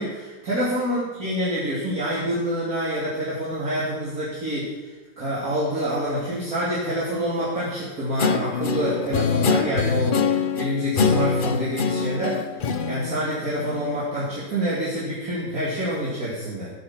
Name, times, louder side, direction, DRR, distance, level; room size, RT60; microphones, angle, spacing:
voice 1, 0.0-12.4 12.9-16.7, equal, 50° right, -9 dB, 3.6 m, -27 dB
Guitar, 8.2-14.0, left 5 dB, 70° left, 0.5 m, -24 dB
15.5 x 8.0 x 7.4 m, 1.3 s
omnidirectional pair, 2.0 m